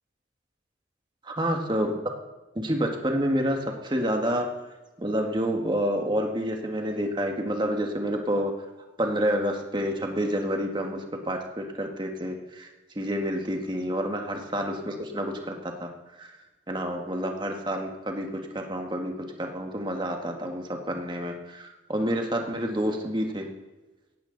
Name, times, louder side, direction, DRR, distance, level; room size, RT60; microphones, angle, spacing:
voice 1, 1.2-1.9 2.5-4.5 5.0-8.5 9.0-12.7 13.0-15.5 15.8-15.9 16.2-16.3 16.7-23.5, equal, 25° right, 3 dB, 1.6 m, -28 dB
17.5 x 15.5 x 3.9 m, 1.1 s
head